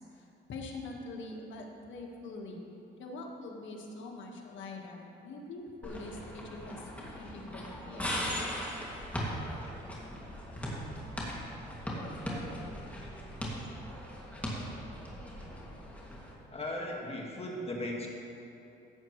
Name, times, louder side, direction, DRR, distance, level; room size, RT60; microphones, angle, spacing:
voice 1, 0.0-2.6 3.0-8.2, left 2 dB, 70° left, 0 dB, 1.6 m, -44 dB
sound 1, 5.8-16.3, equal, 5° left, 2.3 m, -39 dB
voice 2, 16.5-18.1, left 1 dB, 30° left, -2 dB, 1.8 m, -37 dB
16.0 x 8.3 x 3.2 m, 2.9 s
cardioid pair, 90°, 20 cm